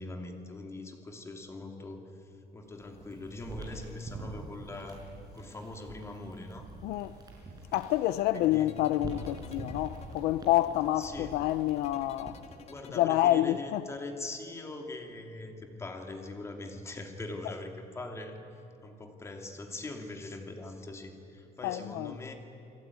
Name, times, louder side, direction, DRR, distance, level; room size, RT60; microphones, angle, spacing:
voice 1, 0.0-5.0 5.3-6.7 8.3-8.7 11.0-11.4 12.7-18.4 18.8-22.3, left 2 dB, 15° left, 2.7 m, -42 dB
sound 1, 2.7-12.5, right 3 dB, 25° right, 6.0 m, -46 dB
voice 2, 6.8-7.1 7.7-12.4 13.0-13.8 21.6-22.2, left 14 dB, 75° left, 0.7 m, -28 dB
sound 2, 7.8-13.7, left 6 dB, 40° left, 2.1 m, -52 dB
29.5 x 21.0 x 9.6 m
cardioid pair, 165°, 16 cm